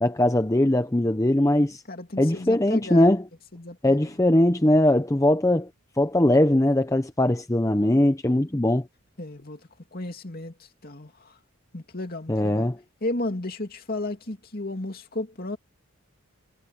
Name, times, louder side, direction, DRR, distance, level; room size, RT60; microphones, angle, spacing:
voice 1, 0.0-1.8 2.2-3.2 3.8-5.7 6.0-8.9 12.3-12.8, left 1 dB, 15° left, 0.6 m, -21 dB
voice 2, 1.9-3.1 3.5-4.1 9.2-9.6 9.9-11.4 11.7-12.7 13.0-15.6, left 2 dB, 45° left, 2.7 m, -34 dB
head